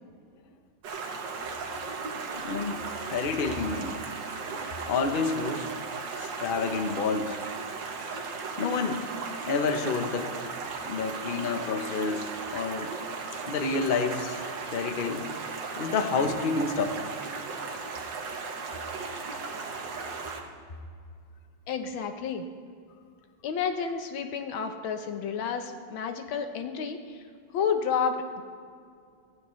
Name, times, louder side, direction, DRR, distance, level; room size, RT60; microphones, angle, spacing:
Stream, 0.8-20.4, right 4 dB, 65° right, 1.7 m, -36 dB
voice 1, 2.3-2.8 3.1-4.0 4.9-5.7 6.2-7.4 8.6-9.1 9.5-10.3 10.9-12.9 13.5-14.4 14.7-15.3 15.8-17.0, left 4 dB, 45° left, 7 dB, 0.7 m, -29 dB
voice 2, 21.7-22.5 23.4-27.2 27.5-28.4, left 6 dB, 85° left, 7 dB, 1.8 m, -30 dB
16.0 x 15.5 x 3.2 m, 2.2 s
omnidirectional pair, 2.1 m